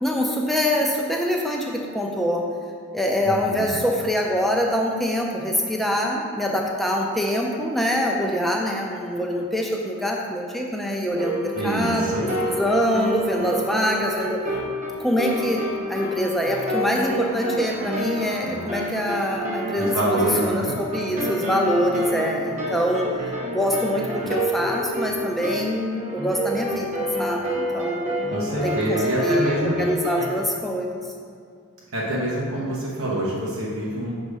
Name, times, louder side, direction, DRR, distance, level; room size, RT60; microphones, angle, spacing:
voice 1, 0.0-2.4 2.9-12.1 12.4-14.4 15.0-15.6 15.9-23.1 23.5-28.2 28.6-31.0, equal, ahead, -1 dB, 0.5 m, -24 dB
voice 2, 3.2-3.7 11.6-12.3 19.8-20.7 28.3-29.8 31.9-34.1, right 1 dB, 80° right, -6 dB, 1.1 m, -26 dB
sound 1, 11.1-30.3, right 1 dB, 35° right, 0.8 m, -29 dB
6.3 x 4.1 x 4.9 m, 2.2 s
head